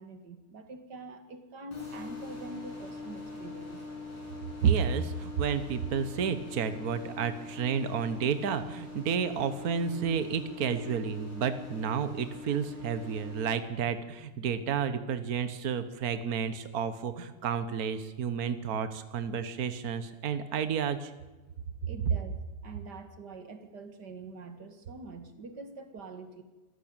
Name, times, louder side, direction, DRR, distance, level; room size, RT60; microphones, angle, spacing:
voice 1, 0.0-3.9 21.8-22.4 22.6-26.4, right 3 dB, 40° right, 8 dB, 2.3 m, -45 dB
sound 1, 1.7-13.5, left 3 dB, 75° left, 7.6 m, -43 dB
voice 2, 4.6-21.1, right 7 dB, 70° right, 11 dB, 0.8 m, -31 dB
26.0 x 15.0 x 8.9 m, 1.2 s
omnidirectional pair, 3.4 m